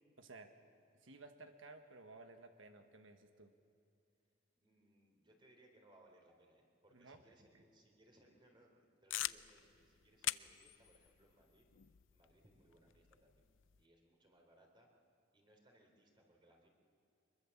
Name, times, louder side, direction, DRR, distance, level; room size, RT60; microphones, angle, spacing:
voice 1, 0.2-0.5 1.0-3.5 6.9-7.2, right 3 dB, 80° right, 6 dB, 1.4 m, -56 dB
voice 2, 4.5-11.7 12.1-13.5 13.8-14.9 15.3-16.7, right 1 dB, 25° right, 1 dB, 3.7 m, -68 dB
sound 1, 9.1-13.9, left 14 dB, 75° left, 0.5 m, -46 dB
24.5 x 22.5 x 7.2 m, 2.7 s
head